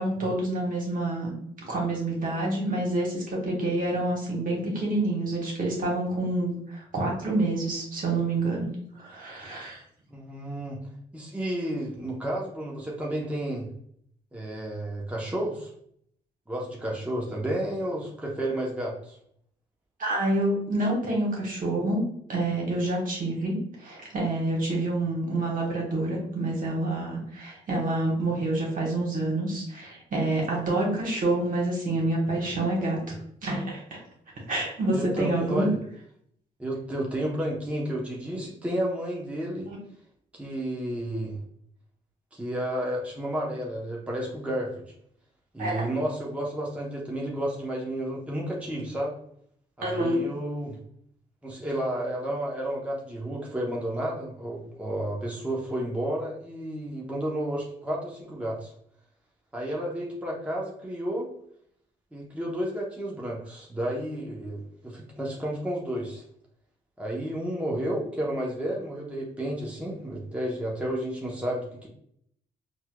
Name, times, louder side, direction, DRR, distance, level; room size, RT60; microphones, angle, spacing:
voice 1, 0.0-1.3 1.6-8.7 8.9-9.8 20.0-22.0 22.3-33.1 33.4-34.0 34.5-35.7 39.7-39.8 45.6-45.9 49.8-50.2, right 2 dB, 55° right, -2 dB, 1.3 m, -27 dB
voice 2, 10.1-10.8 11.1-13.7 14.3-15.7 16.5-19.2 34.9-35.8 36.6-39.7 40.3-41.4 42.3-44.8 45.5-49.1 49.8-50.8 51.4-58.7 59.5-61.3 62.1-66.2 67.0-71.9, right 1 dB, 10° right, -3 dB, 0.8 m, -31 dB
4.2 x 2.3 x 2.2 m, 0.68 s
supercardioid pair, 65°, 17 cm